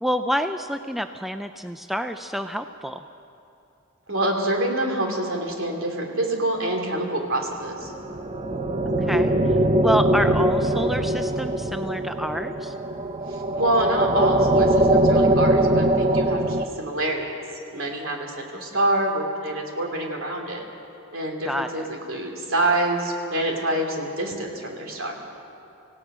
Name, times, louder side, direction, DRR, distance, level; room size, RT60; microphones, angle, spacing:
voice 1, 0.0-3.0 8.8-12.7 21.5-21.9, equal, ahead, 8 dB, 0.4 m, -28 dB
voice 2, 4.1-7.9 13.3-17.4 17.7-20.6 21.1-25.1, right 1 dB, 65° right, 1 dB, 3.1 m, -26 dB
sound 1, 7.8-16.6, right 1 dB, 30° right, 0.8 m, -21 dB
26.0 x 17.0 x 6.2 m, 2.7 s
head